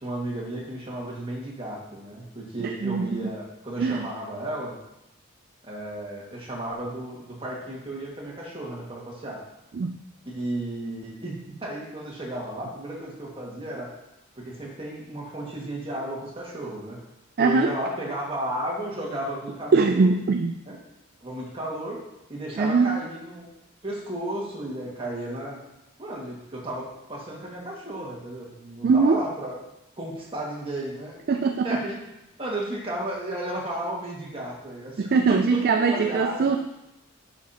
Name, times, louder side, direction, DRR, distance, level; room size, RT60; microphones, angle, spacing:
voice 1, 0.0-4.8 5.6-9.4 10.3-13.9 14.4-17.0 17.4-20.1 20.7-20.8 21.2-22.0 22.3-23.5 23.8-25.6 26.0-29.6 30.0-32.0 32.4-36.6, right 1 dB, 25° right, -4 dB, 1.8 m, -33 dB
voice 2, 2.6-3.2 3.8-4.0 9.8-10.0 17.4-17.7 19.7-20.6 22.6-23.0 28.8-29.2 31.3-31.7 35.0-36.6, right 4 dB, 45° right, 5 dB, 0.3 m, -21 dB
10.5 x 5.8 x 2.9 m, 0.90 s
head